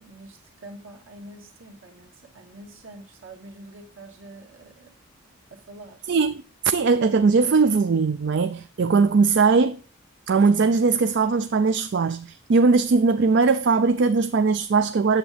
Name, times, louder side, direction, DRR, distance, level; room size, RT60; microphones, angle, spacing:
voice 1, 0.0-4.9 5.5-6.1, right 2 dB, 70° right, 2.1 m, -45 dB
voice 2, 6.1-9.8 10.3-15.2, right 4 dB, 55° right, 0.4 m, -20 dB
8.7 x 7.1 x 5.0 m
head